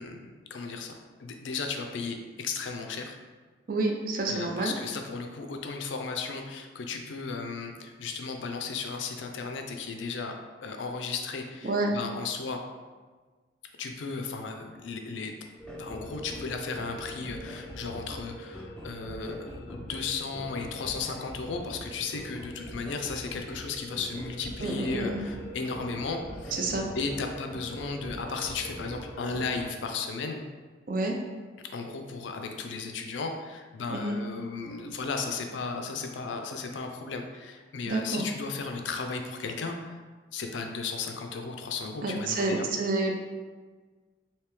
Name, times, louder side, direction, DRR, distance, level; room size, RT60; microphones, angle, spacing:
voice 1, 0.0-3.2 4.3-10.3 10.6-12.6 13.8-15.3 15.7-26.6 26.9-30.4 31.7-40.0 40.3-42.7, left 4 dB, 75° left, 4 dB, 0.4 m, -35 dB
voice 2, 3.7-4.7 11.6-11.9 24.6-25.2 26.5-26.9 30.9-31.1 33.9-34.2 37.9-38.3 42.0-43.1, right 2 dB, 50° right, 1 dB, 0.5 m, -29 dB
sound 1, 15.6-29.7, equal, 5° left, 0.4 m, -42 dB
3.3 x 2.8 x 3.1 m, 1.4 s
head